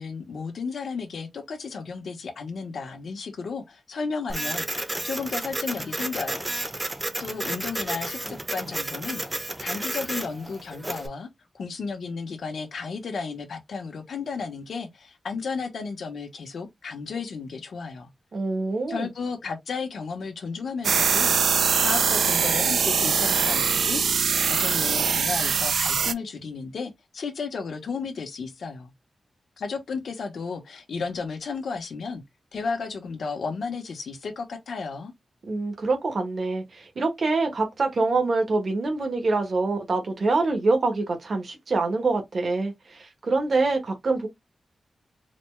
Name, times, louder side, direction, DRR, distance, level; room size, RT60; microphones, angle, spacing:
voice 1, 0.0-6.5 7.2-11.3 11.5-18.1 18.9-28.9 29.6-32.2 32.5-35.1, left 5 dB, 80° left, 0.9 m, -33 dB
Printer, 4.3-11.1, right 1 dB, 15° right, 0.6 m, -32 dB
voice 2, 18.3-19.1 35.5-44.3, right 3 dB, 55° right, 1.0 m, -25 dB
sound 1, 20.8-26.1, right 6 dB, 85° right, 0.3 m, -22 dB
4.1 x 2.2 x 3.2 m
wide cardioid pair, 110°, 0 cm